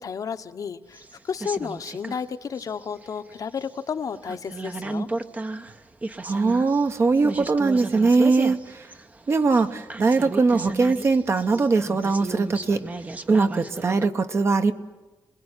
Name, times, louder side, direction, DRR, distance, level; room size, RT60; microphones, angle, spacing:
voice 1, 0.0-5.1, left 6 dB, 50° left, 8 dB, 1.1 m, -32 dB
sound 1, 0.9-2.2 2.6-3.7 4.1-14.1, right 2 dB, 20° right, 0.9 m, -34 dB
voice 2, 6.2-8.9 9.3-12.8 13.3-14.7, right 4 dB, 35° right, 8 dB, 1.1 m, -21 dB
27.0 x 21.0 x 9.9 m, 1.2 s
wide cardioid pair, 165°, 8 cm